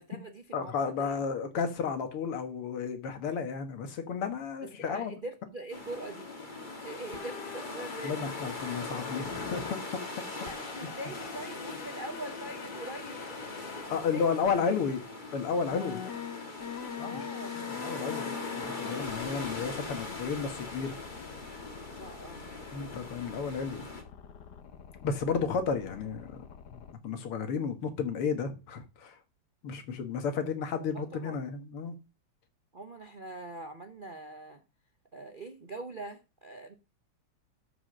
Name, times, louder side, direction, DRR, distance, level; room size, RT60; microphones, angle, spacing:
voice 1, 0.0-1.2 4.6-6.3 6.8-8.3 10.4-13.2 13.8-14.4 17.0-17.6 22.0-22.5 30.9-31.4 32.7-34.6 35.1-36.7, right 2 dB, 45° right, 0.6 m, -43 dB
voice 2, 0.5-5.1 8.0-10.2 13.9-15.0 15.3-16.0 17.0-17.3 17.5-18.3 18.6-21.0 22.7-23.8 25.0-26.4 26.7-29.2 29.6-32.0, left 5 dB, 85° left, 2.4 m, -33 dB
sound 1, 5.7-24.0, left 2 dB, 25° left, 1.7 m, -41 dB
sound 2, 7.1-9.7 10.5-13.9 14.4-14.5 15.7-26.9, left 8 dB, 55° left, 1.5 m, -45 dB
12.5 x 5.1 x 6.4 m
omnidirectional pair, 2.4 m